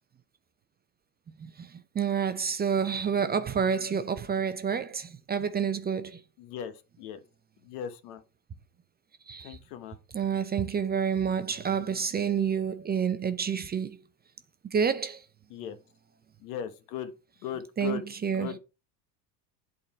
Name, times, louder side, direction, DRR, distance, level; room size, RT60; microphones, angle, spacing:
voice 1, 1.4-6.2 9.3-9.6 10.1-14.0 14.7-15.2 17.8-18.6, right 7 dB, 20° right, 0.6 m, -29 dB
voice 2, 6.4-7.2 7.6-8.2 9.4-10.0 15.5-15.8 16.4-17.1 17.4-18.0 18.3-18.6, left 9 dB, 65° left, 1.3 m, -38 dB
8.4 x 3.8 x 4.3 m
hypercardioid pair, 90°, 48 cm